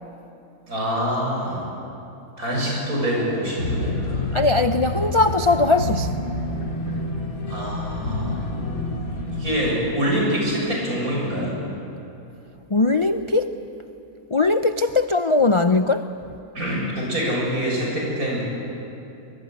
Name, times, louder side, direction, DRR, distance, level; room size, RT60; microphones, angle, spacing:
voice 1, 0.7-1.6 2.4-4.2 7.5-8.4 9.4-11.5 16.5-18.4, equal, 75° right, -2 dB, 8.0 m, -25 dB
sound 1, 3.6-9.7, left 1 dB, 70° left, 3.3 m, -28 dB
voice 2, 4.3-6.2 12.7-13.6 14.3-16.0, left 3 dB, 45° left, 8 dB, 0.4 m, -20 dB
24.0 x 22.5 x 9.3 m, 2.8 s
omnidirectional pair, 1.5 m